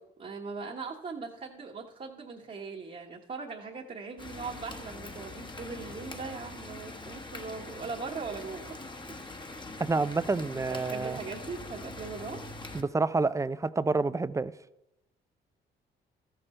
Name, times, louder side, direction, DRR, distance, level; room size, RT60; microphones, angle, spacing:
voice 1, 0.2-8.8 9.5-9.8 10.7-12.4, right 4 dB, 40° right, 1.3 m, -40 dB
sound 1, 4.2-12.8, left 2 dB, 25° left, 1.1 m, -43 dB
voice 2, 9.8-11.2 12.7-14.5, right 3 dB, 15° right, 0.4 m, -28 dB
13.5 x 6.8 x 4.4 m
cardioid pair, 90°, 20 cm